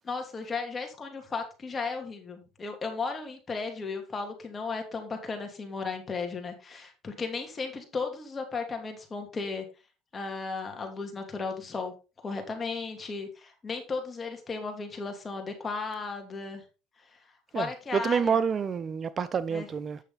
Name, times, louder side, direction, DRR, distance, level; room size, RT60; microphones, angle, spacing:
voice 1, 0.0-9.7 10.1-11.9 12.2-16.6 17.1-17.2 17.5-18.4 19.5-19.7, left 4 dB, 25° left, 3.0 m, -35 dB
voice 2, 17.5-20.0, right 6 dB, 35° right, 0.6 m, -28 dB
9.3 x 6.6 x 4.0 m
supercardioid pair, 95°, 0 cm